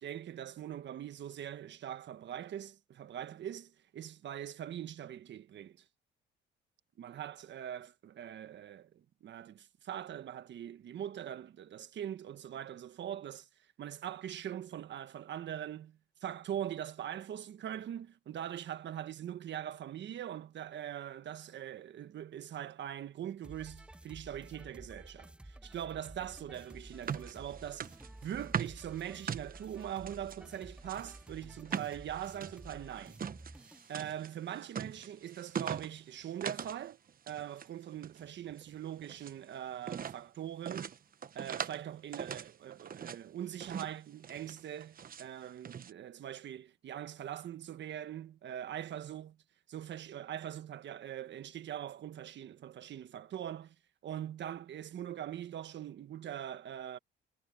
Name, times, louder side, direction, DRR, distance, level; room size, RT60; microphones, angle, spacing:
voice 1, 0.0-5.8 7.0-13.5 13.8-28.0 28.2-33.2 33.9-37.0 37.3-40.9 41.3-49.4 49.7-53.7 54.0-57.0, right 10 dB, 65° right, 1.4 m, -42 dB
sound 1, 23.4-34.0, right 1 dB, 5° right, 0.5 m, -52 dB
sound 2, 26.6-30.4 30.8-36.8 37.1-37.7 38.0-39.4 39.8-40.2 40.7-41.8 42.1-43.2 43.6-44.0 44.2-45.3 45.6-45.9, right 7 dB, 45° right, 1.1 m, -41 dB
cardioid pair, 90°, 20 cm